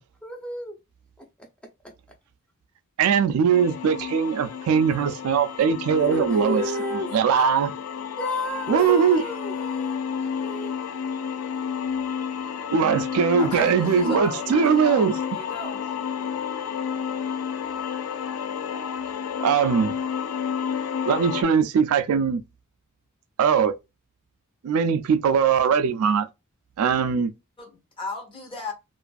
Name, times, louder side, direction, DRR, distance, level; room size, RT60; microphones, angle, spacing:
voice 1, 0.2-0.7 5.9-7.1 8.2-10.7, left 2 dB, 5° left, 0.6 m, -32 dB
voice 2, 3.0-6.6 7.1-7.7 8.7-9.2 12.7-15.1 19.4-20.0 21.0-22.4 23.4-23.7 24.6-26.3 26.8-27.3, right 6 dB, 70° right, 0.3 m, -21 dB
sound 1, 3.5-21.4, left 7 dB, 70° left, 0.4 m, -31 dB
voice 3, 8.7-9.6 13.4-15.8 27.6-28.7, left 1 dB, 25° left, 0.8 m, -34 dB
2.5 x 2.4 x 2.3 m
head